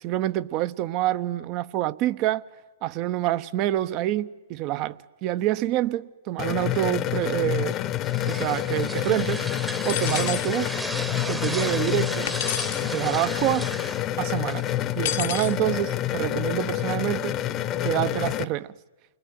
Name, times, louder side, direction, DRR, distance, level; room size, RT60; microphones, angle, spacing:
voice 1, 0.0-2.4 2.8-7.8 8.2-9.4 9.8-10.8 11.3-12.3 12.9-13.7 14.2-14.7 15.0-17.4 17.8-18.7, right 14 dB, 40° right, 0.9 m, -27 dB
sound 1, 6.4-18.4, left 13 dB, 30° left, 1.0 m, -28 dB
sound 2, 7.7-15.2, right 2 dB, 5° right, 1.1 m, -36 dB
sound 3, 9.8-10.5 12.3-12.9 15.0-15.5, left 12 dB, 55° left, 1.1 m, -30 dB
29.0 x 21.0 x 9.5 m
hypercardioid pair, 120°, 0 cm